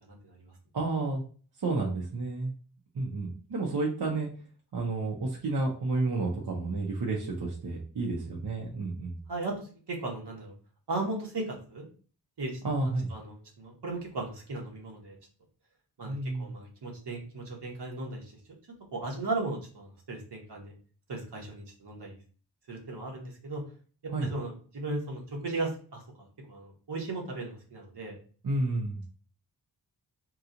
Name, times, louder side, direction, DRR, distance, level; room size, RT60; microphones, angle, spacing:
voice 1, 0.0-0.5 9.3-9.5 9.9-10.5 10.9-11.9 12.4-12.5 13.1-15.2 16.0-18.3 18.9-20.7 21.1-22.2 22.7-23.6 24.0-28.2, right 2 dB, 85° right, 0 dB, 1.1 m, -36 dB
voice 2, 0.7-1.2 1.6-2.5 2.9-4.3 4.7-9.2 12.6-13.1 16.1-16.5 24.1-24.3 28.4-29.0, right 3 dB, 70° right, -2 dB, 0.8 m, -31 dB
2.9 x 2.3 x 3.7 m, 0.40 s
wide cardioid pair, 75°, 40 cm